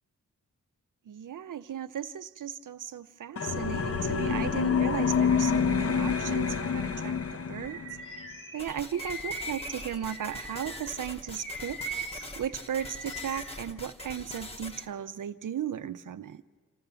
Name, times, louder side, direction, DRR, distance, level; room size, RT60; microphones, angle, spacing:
voice 1, 1.1-8.2 8.5-11.8 12.4-16.4, right 9 dB, 75° right, 12 dB, 0.7 m, -36 dB
sound 1, 3.4-8.0, left 6 dB, 45° left, 0.7 m, -27 dB
Bird vocalization bird call bird song, 7.6-10.9 11.4-13.6, right 1 dB, 85° left, 2.2 m, -40 dB
sound 2, 8.6-14.9, left 1 dB, 20° left, 0.9 m, -43 dB
26.5 x 14.5 x 6.9 m, 1.5 s
wide cardioid pair, 100°, 32 cm